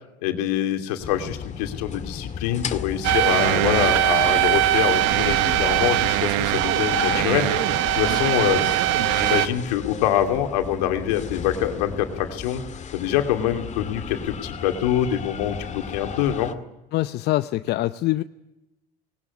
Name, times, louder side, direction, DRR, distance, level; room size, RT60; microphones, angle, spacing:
voice 1, 0.2-7.5 7.9-8.7 9.1-12.6 12.9-16.5, left 11 dB, 75° left, 6 dB, 2.7 m, -25 dB
sound 1, 1.0-16.5, left 6 dB, 35° left, 2.0 m, -35 dB
sound 2, 3.0-9.5, right 14 dB, 65° right, 1.5 m, -21 dB
voice 2, 16.9-18.2, left 16 dB, 55° left, 12 dB, 0.8 m, -24 dB
19.5 x 19.0 x 9.7 m, 0.94 s
hypercardioid pair, 70°, 20 cm